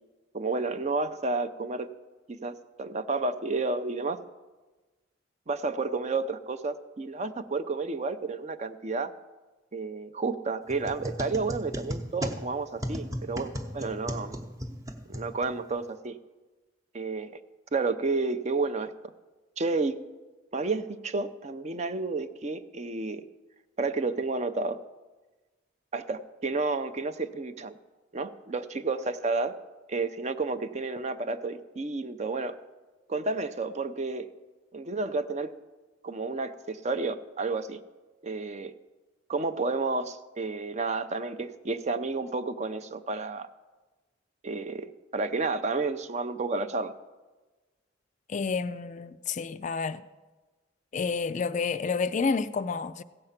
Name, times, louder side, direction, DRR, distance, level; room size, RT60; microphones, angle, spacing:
voice 1, 0.3-1.9 2.3-4.2 5.5-9.1 9.7-14.5 15.1-16.2 16.9-17.3 17.7-18.9 19.6-20.0 20.5-23.2 23.8-24.8 25.9-27.7 28.1-29.6 29.9-32.6 33.1-34.3 34.7-35.6 36.0-37.8 38.2-38.7 39.3-43.5 44.4-46.9, right 3 dB, 35° right, 0.5 m, -31 dB
sound 1, 10.7-15.8, equal, 15° right, 0.9 m, -36 dB
voice 2, 48.3-50.0 50.9-53.0, left 5 dB, 40° left, 0.3 m, -29 dB
15.5 x 7.7 x 5.8 m
head